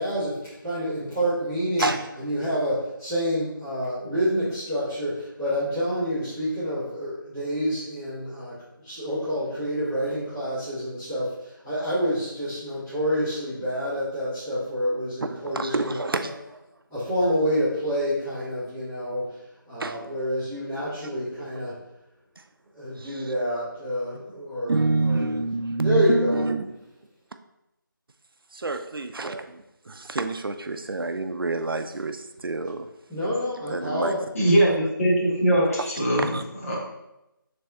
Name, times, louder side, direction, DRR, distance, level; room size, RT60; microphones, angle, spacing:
voice 1, 0.0-16.3 16.9-19.4 19.7-21.8 22.7-25.4 25.8-26.5 33.1-34.3, equal, 5° left, 0.6 m, -28 dB
voice 2, 15.3-16.6 19.8-20.0 23.0-23.2 24.7-26.7 28.5-32.9 33.7-34.1 35.8-35.9 36.2-36.4, right 3 dB, 80° right, 0.5 m, -28 dB
voice 3, 34.3-36.3 36.7-36.8, right 1 dB, 40° left, 1.4 m, -21 dB
4.2 x 3.3 x 3.4 m
figure-of-eight pair, 170°, 12 cm